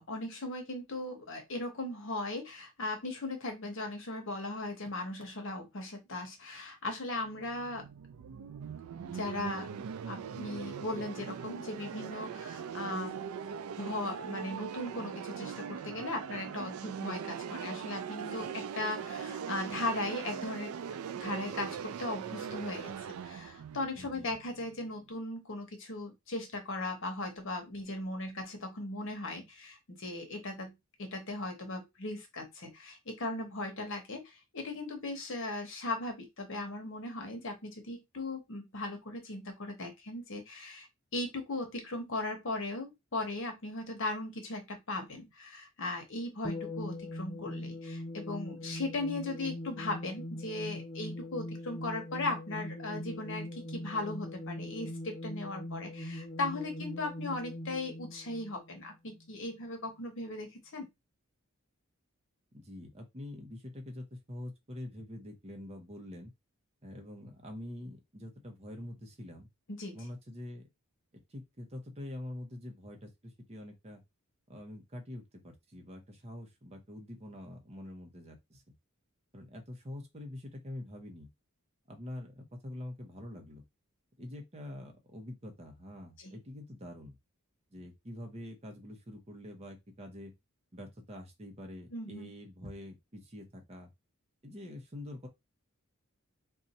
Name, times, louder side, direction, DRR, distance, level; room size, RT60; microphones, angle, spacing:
voice 1, 0.0-7.9 9.0-9.8 10.1-13.2 13.8-20.7 21.2-30.7 31.0-40.9 41.1-60.9 69.7-70.0 86.2-86.3 91.9-92.3, left 2 dB, 60° left, 1.0 m, -38 dB
sound 1, 7.2-25.0, right 7 dB, 80° right, 0.3 m, -41 dB
voice 2, 23.9-24.3 62.5-66.3 66.8-69.5 69.9-70.7 71.3-74.0 74.5-78.6 79.3-81.3 81.9-83.6 84.2-87.2 87.7-90.3 90.7-93.9 94.4-95.3, left 1 dB, 30° right, 0.8 m, -45 dB
sound 2, 46.4-59.3, left 1 dB, 15° left, 0.9 m, -41 dB
2.6 x 2.3 x 4.0 m
head